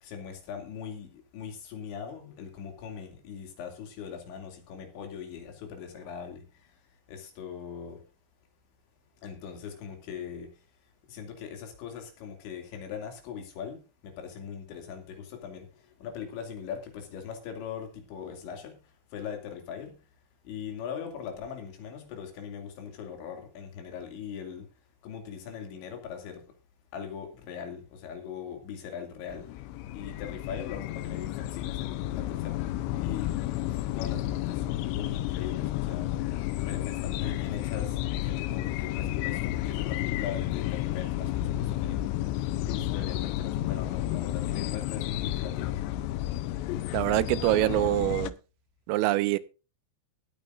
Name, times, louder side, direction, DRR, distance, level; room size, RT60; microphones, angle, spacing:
voice 1, 0.0-6.8 7.1-8.0 9.2-10.6 11.1-20.1 20.4-24.7 25.0-26.5 26.9-29.6 29.9-32.6 33.0-33.3 33.6-36.2 36.5-42.2 42.6-45.8, left 7 dB, 65° left, 4.7 m, -41 dB
sound 1, 29.3-48.3, left 14 dB, 85° left, 2.4 m, -31 dB
voice 2, 46.9-48.4 48.9-49.4, right 17 dB, 90° right, 3.4 m, -25 dB
21.0 x 8.8 x 2.6 m
omnidirectional pair, 5.8 m